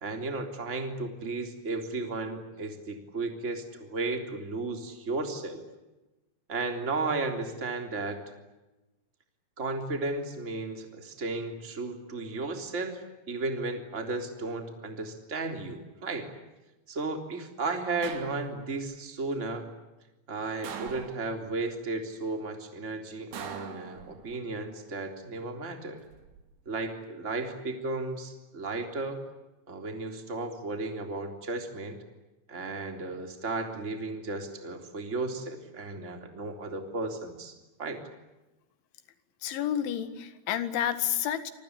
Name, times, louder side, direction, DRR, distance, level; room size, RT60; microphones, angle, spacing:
voice 1, 0.0-5.6 6.5-8.2 9.6-16.3 16.9-19.7 20.3-26.0 26.6-29.2 29.7-32.0 32.5-38.0, right 3 dB, 20° right, 4 dB, 3.0 m, -34 dB
sound 1, 18.0-18.8 20.6-21.6 23.3-24.5 25.9-26.4, right 7 dB, 70° right, 5.0 m, -43 dB
voice 2, 39.4-41.5, left 10 dB, 80° left, 11 dB, 4.2 m, -30 dB
28.0 x 24.5 x 8.5 m, 1.0 s
omnidirectional pair, 5.3 m